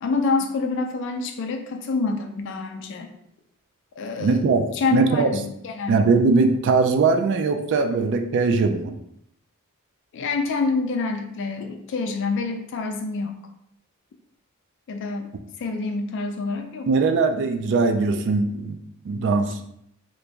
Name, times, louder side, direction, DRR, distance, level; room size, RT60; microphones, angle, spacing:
voice 1, 0.0-3.1 4.0-4.4 4.7-6.0 10.1-13.4 14.9-15.3 15.6-16.9, left 4 dB, 55° left, 5 dB, 0.3 m, -27 dB
voice 2, 4.2-5.3 5.9-8.9 16.9-18.8 19.1-19.6, right 4 dB, 55° right, 7 dB, 0.3 m, -20 dB
3.0 x 2.5 x 3.4 m, 0.76 s
head